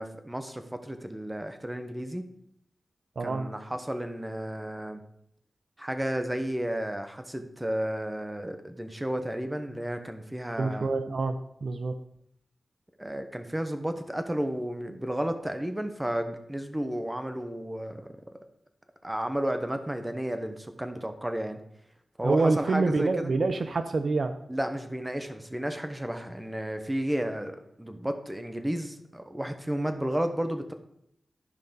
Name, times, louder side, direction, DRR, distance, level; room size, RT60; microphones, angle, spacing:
voice 1, 0.0-2.2 3.2-5.0 5.8-10.9 13.0-18.1 19.0-21.6 22.2-23.3 24.5-30.7, right 1 dB, 15° right, 7 dB, 1.1 m, -32 dB
voice 2, 3.2-3.5 10.6-12.0 22.2-24.4, right 3 dB, 70° right, 9 dB, 0.6 m, -27 dB
12.5 x 5.3 x 3.9 m, 0.73 s
cardioid pair, 60°, 0 cm